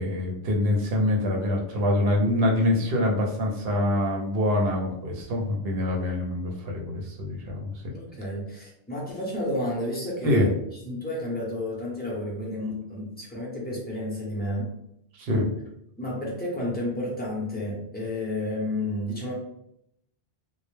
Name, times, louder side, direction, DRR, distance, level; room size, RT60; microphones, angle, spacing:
voice 1, 0.0-7.9 10.2-10.5 15.2-15.5, left 1 dB, 65° right, 0 dB, 0.7 m, -25 dB
voice 2, 7.9-10.5 10.8-14.7 16.0-19.3, left 1 dB, 10° left, -4 dB, 0.5 m, -31 dB
2.1 x 2.1 x 3.0 m, 0.77 s
omnidirectional pair, 1.2 m